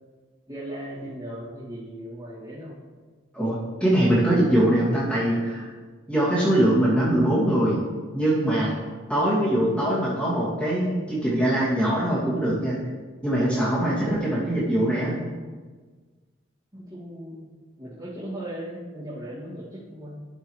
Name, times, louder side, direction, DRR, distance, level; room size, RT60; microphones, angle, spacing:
voice 1, 0.5-2.8 16.7-17.5 17.8-20.2, right 1 dB, 20° right, -14 dB, 2.3 m, -37 dB
voice 2, 3.3-5.7 6.1-7.8 8.1-8.8 9.1-12.7 13.2-15.1, right 1 dB, 5° left, -9 dB, 2.4 m, -22 dB
12.0 x 5.5 x 3.2 m, 1.4 s
head